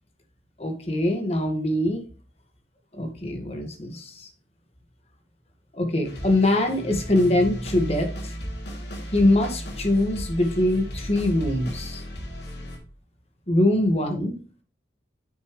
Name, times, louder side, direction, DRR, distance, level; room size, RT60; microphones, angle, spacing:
voice 1, 0.6-2.0 2.9-4.3 5.7-8.4 9.1-12.0 13.5-14.4, left 1 dB, 35° left, 4 dB, 1.8 m, -23 dB
sound 1, 6.0-12.8, equal, 70° left, 2.8 m, -35 dB
8.9 x 6.8 x 3.2 m, 0.37 s
head